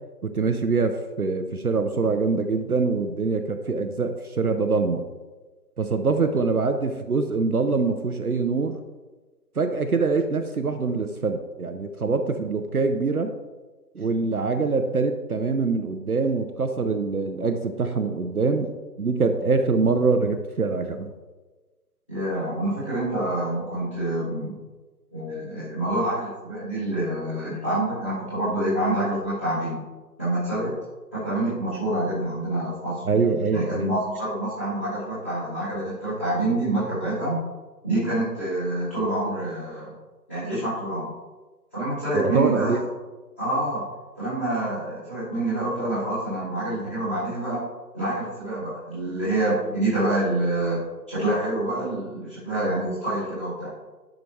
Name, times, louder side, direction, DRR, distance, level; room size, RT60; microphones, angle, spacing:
voice 1, 0.2-5.0 5.8-8.8 9.6-13.3 14.0-18.7 19.0-21.1 33.0-33.9 42.3-42.8, right 4 dB, 60° right, 7 dB, 0.6 m, -24 dB
voice 2, 22.1-24.5 25.1-29.8 30.2-30.8 31.1-33.0 33.5-37.4 37.8-39.9 40.3-41.1 41.7-42.8 43.4-43.8 44.2-47.6 47.9-50.8 51.1-53.7, right 1 dB, 10° left, -15 dB, 1.7 m, -27 dB
10.5 x 5.1 x 3.1 m, 1.2 s
figure-of-eight pair, 170°, 50 cm